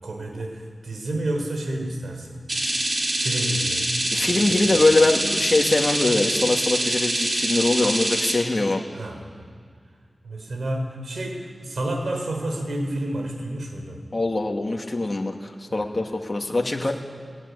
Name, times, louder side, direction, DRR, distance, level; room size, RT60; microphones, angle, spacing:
voice 1, 0.0-2.4 3.2-3.8 4.2-4.8 8.9-9.5 10.2-14.0 15.7-15.9 16.5-16.9, right 1 dB, 75° right, 3 dB, 4.9 m, -30 dB
sound 1, 2.5-8.3, right 1 dB, 50° right, 5.4 m, -25 dB
voice 2, 4.1-8.8 14.1-16.9, left 2 dB, 35° left, 1 dB, 2.4 m, -22 dB
20.0 x 20.0 x 10.0 m, 2.1 s
wide cardioid pair, 60°, 0 cm